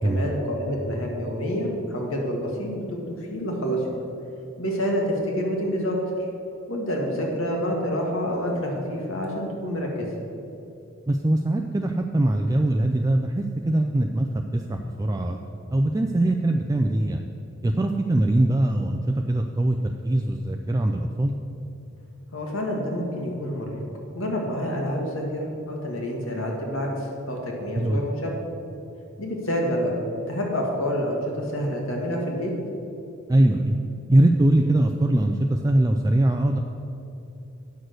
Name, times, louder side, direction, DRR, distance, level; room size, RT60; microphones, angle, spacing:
voice 1, 0.0-3.9 4.6-6.0 6.7-10.1 22.3-23.8 24.1-28.3 29.2-29.9 30.3-32.5, equal, 70° left, 0 dB, 1.8 m, -28 dB
voice 2, 11.1-15.4 15.7-17.3 17.6-21.4 27.7-28.1 33.3-33.8 34.1-36.6, right 1 dB, 15° right, 3 dB, 0.3 m, -22 dB
9.4 x 6.2 x 6.5 m, 2.8 s
head